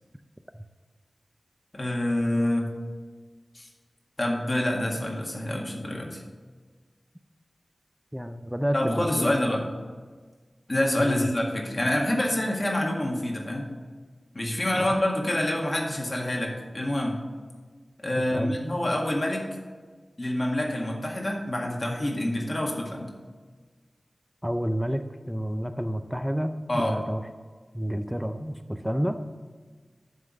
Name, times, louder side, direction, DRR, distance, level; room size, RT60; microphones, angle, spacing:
voice 1, 1.7-2.7 3.5-3.7 4.2-6.2 8.7-9.6 10.7-13.7 14.3-17.2 18.0-19.5 20.2-23.1 26.7-27.0, left 1 dB, 40° left, -1 dB, 1.9 m, -27 dB
voice 2, 8.1-9.5 11.0-11.3 14.8-14.9 18.3-18.6 24.4-27.2 27.7-29.2, equal, ahead, 8 dB, 0.5 m, -29 dB
11.0 x 3.7 x 7.4 m, 1.5 s
wide cardioid pair, 60°, 0 cm